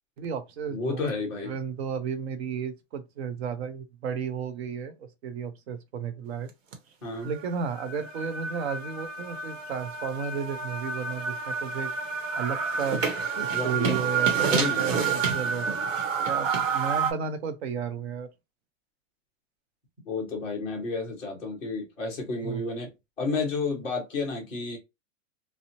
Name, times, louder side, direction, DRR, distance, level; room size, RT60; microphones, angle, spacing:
voice 1, 0.2-1.0 1.4-6.5 7.2-11.9 12.4-13.0 13.4-15.7 16.2-18.3 22.4-22.6, right 6 dB, 55° right, 0.6 m, -33 dB
voice 2, 0.7-1.5 7.0-7.3 13.5-14.0 14.5-14.9 20.1-22.9 23.2-24.8, left 3 dB, 5° left, 0.4 m, -31 dB
sound 1, 6.7-6.8 7.2-17.1, right 6 dB, 85° right, 1.0 m, -29 dB
2.7 x 2.0 x 2.7 m
supercardioid pair, 175°, 38 cm